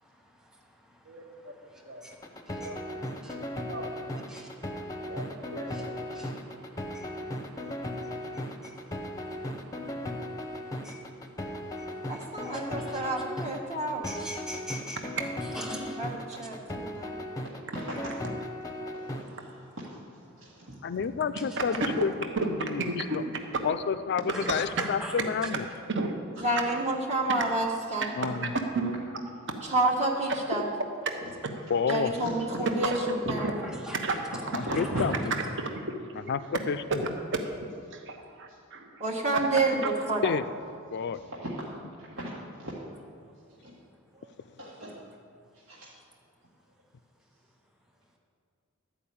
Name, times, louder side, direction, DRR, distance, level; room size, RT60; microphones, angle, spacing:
sound 1, 2.1-19.2, left 1 dB, 15° left, 0.7 m, -37 dB
voice 1, 3.6-3.9 5.1-5.8 15.0-15.2 22.4-22.5 24.3-24.6 25.9-26.1 28.7-28.9 32.8-33.0 34.0-34.1 37.3-37.4 37.9-39.0 39.8-39.9, right 4 dB, 60° right, 4 dB, 1.0 m, -33 dB
voice 2, 12.1-14.2 15.7-17.1 26.4-28.1 29.6-30.6 31.9-32.9 33.3-33.5 39.0-40.3 44.2-44.3, right 2 dB, 35° right, -2 dB, 1.2 m, -29 dB
voice 3, 14.0-15.0 15.5-16.0 24.3-25.1 33.9-34.2, equal, 5° right, -1 dB, 1.2 m, -40 dB
voice 4, 18.9-20.8 26.4-26.5 31.2-31.3 32.2-32.3 33.2-33.7 34.5-35.1 40.9-41.7 42.0-42.7 43.6-43.7 44.6-45.0 45.5-45.9, right 1 dB, 80° right, -7 dB, 1.7 m, -38 dB
voice 5, 20.8-23.2 23.6-25.7 28.2-28.5 31.7-32.1 34.5-35.3 36.3-37.0 40.2-40.4 40.9-41.2, left 6 dB, 50° left, 13 dB, 0.4 m, -30 dB
12.5 x 5.0 x 8.6 m, 2.3 s
head